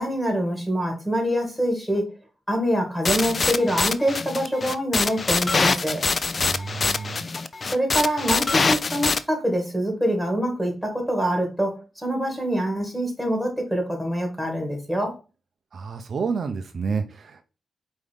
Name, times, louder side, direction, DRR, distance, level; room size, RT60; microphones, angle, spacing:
voice 1, 0.0-2.1 2.5-6.0 7.6-15.2, equal, ahead, 1.8 m, -25 dB
sound 1, 3.0-9.2, left 4 dB, 45° left, 0.3 m, -24 dB
voice 2, 6.4-7.3 15.7-17.4, right 5 dB, 60° right, 0.4 m, -29 dB
4.8 x 2.7 x 3.4 m
cardioid pair, 70°, 0 cm